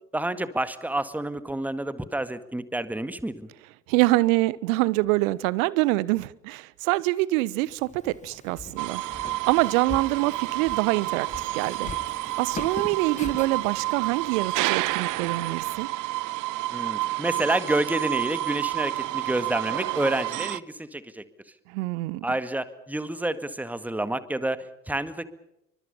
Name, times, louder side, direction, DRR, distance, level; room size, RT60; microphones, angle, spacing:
voice 1, 0.1-3.5 16.7-21.2 22.2-25.3, right 1 dB, 5° right, 1.9 m, -29 dB
voice 2, 3.9-9.0 9.5-11.3 11.5-11.9 12.4-15.9 21.7-22.2, right 20 dB, 55° right, 1.2 m, -25 dB
Walk footsteps, 7.7-15.8, left 5 dB, 15° left, 1.1 m, -43 dB
sound 1, 8.8-20.6, right 18 dB, 40° right, 0.9 m, -30 dB
29.0 x 24.0 x 5.5 m
figure-of-eight pair, 70°, 48 cm